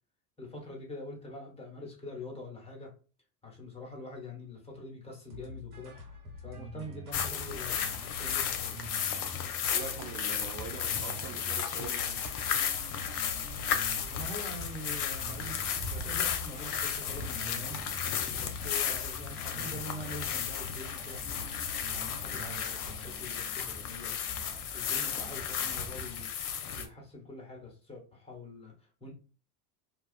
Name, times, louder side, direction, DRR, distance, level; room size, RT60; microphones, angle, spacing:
voice 1, 0.4-2.9 3.4-6.0 6.4-8.8 14.1-15.6 15.9-17.8 18.4-21.4 21.9-24.2 24.7-26.3 26.7-29.1, left 1 dB, 15° left, -2 dB, 1.1 m, -44 dB
sound 1, 5.3-22.6, left 2 dB, 80° right, 1.1 m, -46 dB
sound 2, 7.1-26.9, left 8 dB, 80° left, 0.6 m, -34 dB
voice 2, 9.7-12.2, right 8 dB, 55° right, 4 dB, 0.6 m, -43 dB
sound 3, 14.7-26.0, equal, 5° right, 1.1 m, -52 dB
2.4 x 2.3 x 2.4 m, 0.36 s
hypercardioid pair, 75°, 45 cm